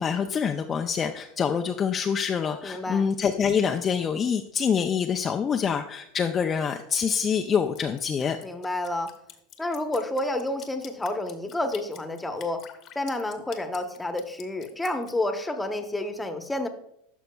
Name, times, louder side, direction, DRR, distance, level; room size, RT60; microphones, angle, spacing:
voice 1, 0.0-8.4, left 7 dB, 30° left, 4 dB, 0.4 m, -26 dB
voice 2, 2.6-3.1 8.4-9.1 9.6-12.6 12.9-16.7, left 1 dB, 10° left, 6 dB, 1.0 m, -29 dB
Drip, 7.5-15.1, left 10 dB, 50° left, 1.0 m, -47 dB
11.5 x 6.0 x 2.3 m, 0.76 s
hypercardioid pair, 90°, 0 cm